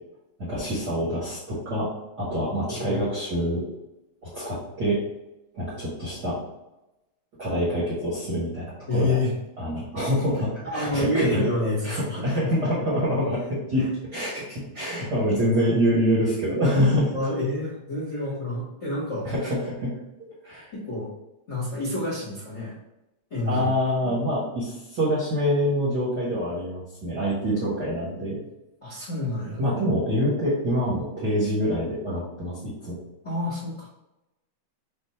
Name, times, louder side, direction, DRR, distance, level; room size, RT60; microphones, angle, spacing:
voice 1, 0.4-1.9 2.2-3.6 4.2-5.0 5.5-6.4 7.4-9.2 9.6-11.4 11.8-17.2 19.2-20.0 20.4-20.7 23.5-28.4 29.6-33.0, equal, 60° right, -8 dB, 1.1 m, -26 dB
voice 2, 8.9-9.3 10.6-12.2 13.4-13.5 13.8-13.9 17.1-19.3 20.7-21.1 21.5-22.8 23.3-23.7 24.0-24.2 28.8-29.6 33.2-33.9, left 2 dB, 80° left, -8 dB, 0.6 m, -28 dB
5.2 x 2.0 x 4.2 m, 0.94 s
omnidirectional pair, 3.5 m